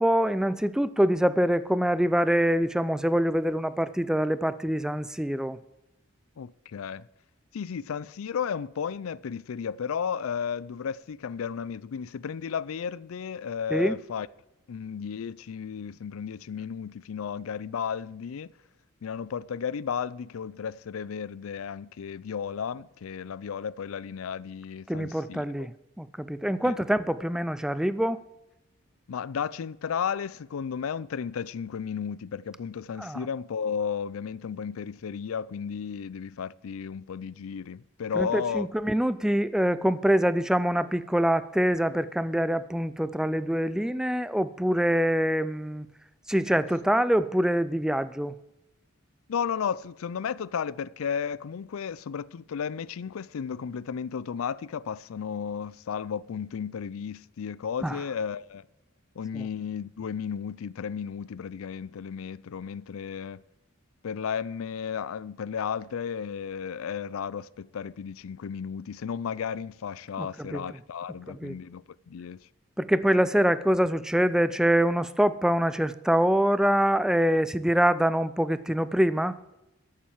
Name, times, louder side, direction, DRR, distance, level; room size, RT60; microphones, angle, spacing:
voice 1, 0.0-5.6 13.7-14.0 24.9-28.2 33.0-33.3 38.1-45.9 46.3-48.3 57.8-58.0 59.3-59.5 70.2-70.6 71.4-71.6 72.8-79.4, equal, 5° right, 0.4 m, -25 dB
voice 2, 6.4-7.1 7.5-14.3 14.7-18.5 19.0-25.7 26.6-26.7 29.1-38.7 49.3-58.6 59.2-63.4 64.0-72.5, left 7 dB, 85° left, 0.4 m, -34 dB
13.0 x 7.4 x 7.2 m
head